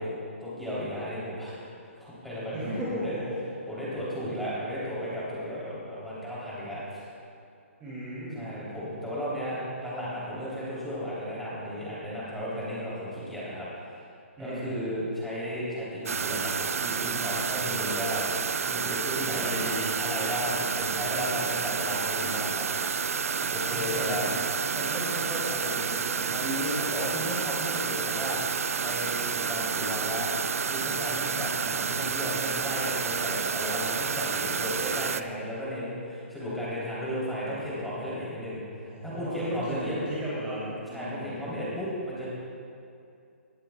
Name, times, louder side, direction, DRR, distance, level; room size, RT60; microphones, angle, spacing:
voice 1, 0.0-1.6 2.0-3.2 3.7-7.1 8.3-14.1 14.4-22.6 23.5-24.3 26.3-28.4 28.8-30.3 30.7-40.0 40.9-42.3, equal, ahead, -9 dB, 3.4 m, -34 dB
voice 2, 2.5-3.5 7.8-8.5 14.4-14.7 19.3-19.9 23.4-24.4 24.6-26.3 38.9-41.9, equal, 15° right, -8 dB, 2.7 m, -36 dB
sound 1, 16.1-35.2, right 6 dB, 85° right, 0.5 m, -30 dB
19.5 x 13.0 x 2.4 m, 2.5 s
hypercardioid pair, 160°, 7 cm